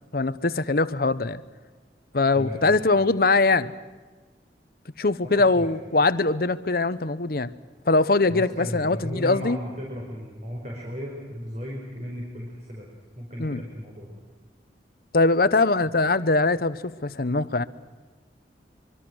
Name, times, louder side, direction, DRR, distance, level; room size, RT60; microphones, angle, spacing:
voice 1, 0.1-1.4 2.1-3.7 5.0-7.5 7.9-9.6 13.4-13.6 15.1-17.6, left 3 dB, 55° left, 14 dB, 0.9 m, -22 dB
voice 2, 2.3-2.9 5.2-5.7 8.3-12.9 13.1-14.2, equal, 40° right, -1 dB, 4.8 m, -35 dB
25.0 x 23.5 x 6.3 m, 1.4 s
head